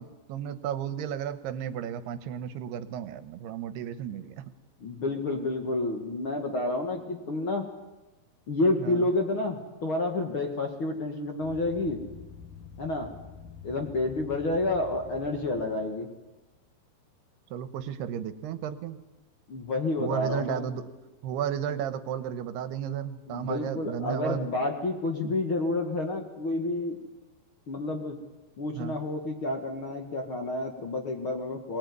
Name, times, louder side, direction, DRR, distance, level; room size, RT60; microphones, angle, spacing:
voice 1, 0.0-4.5 8.8-9.1 17.5-19.0 20.0-20.9 21.2-24.5 25.2-25.4 28.7-29.0, right 9 dB, 90° right, 12 dB, 3.1 m, -33 dB
voice 2, 4.8-7.7 8.5-12.0 12.8-13.1 13.6-16.1 19.5-20.6 23.3-27.0 27.7-28.2 28.6-31.8, left 2 dB, 45° left, 4 dB, 1.9 m, -29 dB
sound 1, 11.4-16.0, left 6 dB, 60° left, 2.9 m, -47 dB
22.5 x 20.0 x 9.6 m, 1.1 s
omnidirectional pair, 4.6 m